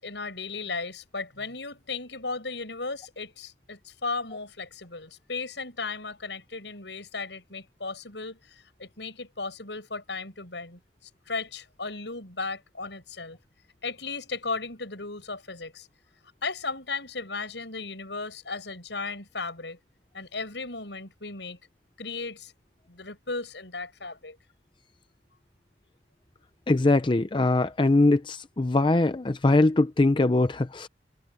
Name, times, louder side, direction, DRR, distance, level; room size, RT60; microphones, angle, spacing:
voice 1, 0.0-10.8 11.3-13.4 13.8-15.9 16.4-19.8 20.1-21.6 22.0-22.5 22.9-24.4, left 3 dB, 75° left, 7.4 m, -35 dB
voice 2, 26.7-30.9, left 2 dB, 25° left, 0.5 m, -22 dB
head